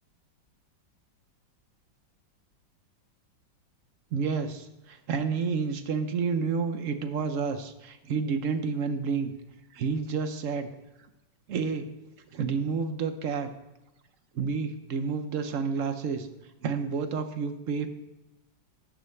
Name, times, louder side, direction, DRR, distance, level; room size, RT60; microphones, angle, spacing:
voice 1, 4.1-9.3 9.7-10.7 11.5-11.9 12.3-13.5 14.3-16.3 16.6-17.9, right 5 dB, 55° right, 8 dB, 1.0 m, -30 dB
12.0 x 9.4 x 3.3 m, 0.99 s
omnidirectional pair, 2.1 m